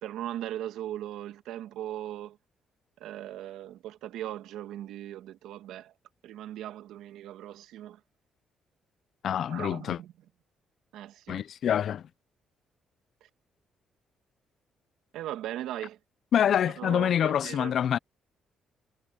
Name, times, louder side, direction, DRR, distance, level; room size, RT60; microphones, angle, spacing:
voice 1, 0.0-2.4 3.0-5.9 6.2-8.0 9.5-10.1 10.9-11.4 15.1-16.0 16.6-17.7, right 12 dB, 90° right, 1.9 m, -39 dB
voice 2, 9.2-10.0 11.3-12.0 16.3-18.0, left 9 dB, 65° left, 0.5 m, -26 dB
cardioid pair, 90°, 0 cm